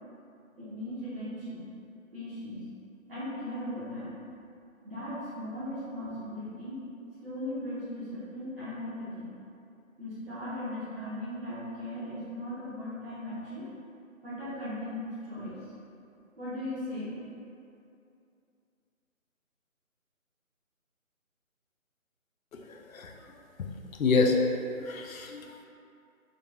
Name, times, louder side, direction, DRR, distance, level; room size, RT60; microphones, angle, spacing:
voice 1, 0.6-1.6 2.1-2.6 3.1-4.2 4.8-6.8 7.2-9.3 10.0-13.6 14.2-15.6 16.4-17.1, left 1 dB, 45° right, -12 dB, 1.1 m, -38 dB
voice 2, 22.7-23.1 23.6-23.7 24.0-24.4 24.8-25.6, left 4 dB, 75° left, 2 dB, 0.5 m, -27 dB
3.8 x 2.9 x 2.2 m, 2.6 s
figure-of-eight pair, 170°, 42 cm